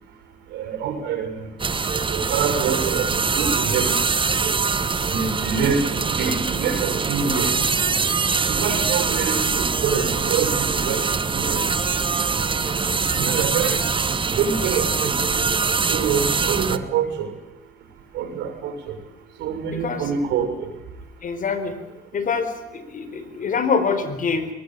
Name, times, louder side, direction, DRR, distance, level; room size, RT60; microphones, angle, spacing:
voice 1, 0.5-1.5 2.1-4.0 4.4-4.5 5.1-7.5 8.5-11.7 13.1-13.8 14.0-15.2 15.9-17.3 18.1-19.0 19.4-20.7, right 6 dB, 80° right, 6 dB, 6.9 m, -26 dB
sound 1, 1.6-16.8, right 5 dB, 30° right, 1.5 m, -23 dB
voice 2, 19.7-20.0 21.2-21.8 22.1-24.5, left 5 dB, 50° left, 11 dB, 4.4 m, -25 dB
23.0 x 19.5 x 9.3 m, 0.98 s
cardioid pair, 85°, 18 cm